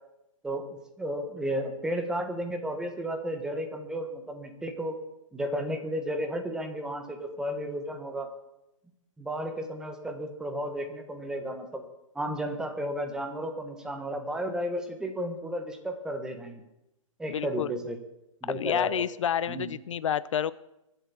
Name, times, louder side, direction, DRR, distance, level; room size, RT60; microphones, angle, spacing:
voice 1, 0.4-5.0 5.3-8.3 9.2-11.8 12.1-16.6 17.2-18.0 18.4-18.9 19.5-19.7, equal, 5° right, 6 dB, 1.4 m, -33 dB
voice 2, 17.3-17.7 18.5-20.5, left 9 dB, 65° left, 18 dB, 0.6 m, -29 dB
22.5 x 8.1 x 7.2 m, 0.88 s
hypercardioid pair, 160°, 17 cm